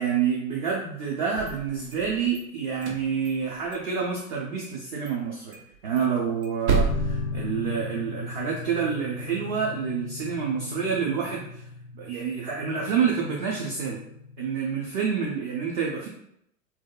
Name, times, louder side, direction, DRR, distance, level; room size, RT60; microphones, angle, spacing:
voice 1, 0.0-5.6 5.8-11.6 11.9-14.0 14.4-16.1, right 6 dB, 35° right, -3 dB, 0.4 m, -28 dB
sound 1, 1.2-2.4 2.7-3.9 4.1-4.2 4.6-4.8 5.0-5.1 5.5-8.1, right 4 dB, 75° right, 0.7 m, -30 dB
sound 2, 6.9-14.5, left 4 dB, 80° left, 0.5 m, -37 dB
2.6 x 2.3 x 2.3 m, 0.76 s
figure-of-eight pair, 110°, 43 cm